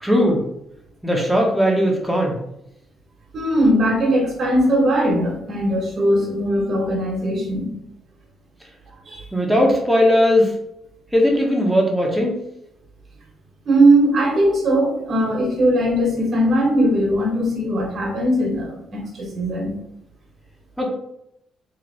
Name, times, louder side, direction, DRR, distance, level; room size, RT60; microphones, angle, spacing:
voice 1, 0.0-0.4 1.0-2.4 9.3-10.5 11.1-12.4 20.8-20.9, equal, ahead, -1 dB, 1.1 m, -18 dB
voice 2, 3.3-7.7 9.0-9.3 13.6-19.8, right 1 dB, 50° right, 0 dB, 1.3 m, -19 dB
3.2 x 2.8 x 4.1 m, 0.79 s
cardioid pair, 90°, 0 cm